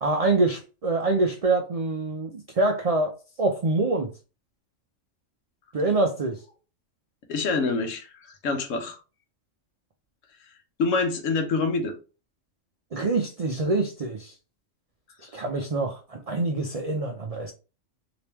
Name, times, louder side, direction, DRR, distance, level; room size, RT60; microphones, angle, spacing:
voice 1, 0.0-3.1 3.4-4.1 5.7-6.4 12.9-14.3 15.2-17.5, right 2 dB, 75° right, 0.3 m, -25 dB
voice 2, 7.3-9.0 10.8-11.9, left 4 dB, 90° left, 1.1 m, -26 dB
3.3 x 2.9 x 2.9 m
omnidirectional pair, 1.3 m